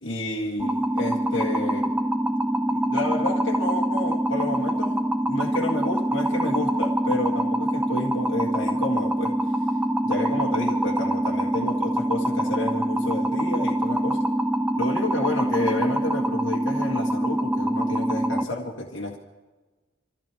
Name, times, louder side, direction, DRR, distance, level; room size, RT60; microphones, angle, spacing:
voice 1, 0.0-1.9 2.7-9.4 10.0-14.2 14.8-19.2, left 1 dB, 80° left, -1 dB, 1.8 m, -30 dB
sound 1, 0.6-18.4, right 1 dB, 10° right, 0.6 m, -25 dB
26.0 x 15.0 x 3.5 m, 1.3 s
head